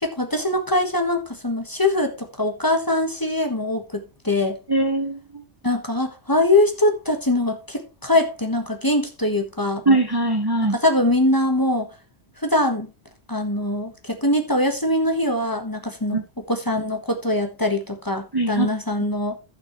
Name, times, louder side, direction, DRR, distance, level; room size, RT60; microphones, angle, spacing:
voice 1, 0.0-4.6 5.6-9.8 10.6-11.9 12.4-12.9 13.3-16.2 16.5-19.4, left 1 dB, 20° left, 1.4 m, -22 dB
voice 2, 4.7-5.4 9.9-10.8 16.1-16.2 18.3-18.7, right 2 dB, 20° right, 1.0 m, -21 dB
15.0 x 6.0 x 3.1 m
omnidirectional pair, 1.1 m